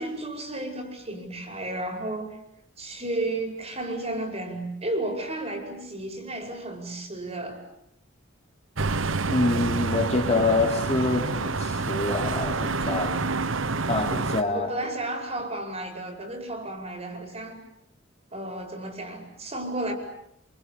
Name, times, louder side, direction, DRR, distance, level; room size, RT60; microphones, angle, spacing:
voice 1, 0.0-2.4 2.8-7.6 14.5-17.6 18.3-19.9, right 1 dB, 30° right, 5 dB, 5.4 m, -33 dB
sound 1, 8.8-14.4, right 3 dB, 80° right, 1.2 m, -28 dB
voice 2, 9.3-13.2 13.9-14.7, left 2 dB, 35° left, 3 dB, 3.4 m, -26 dB
26.0 x 25.0 x 8.5 m, 0.73 s
head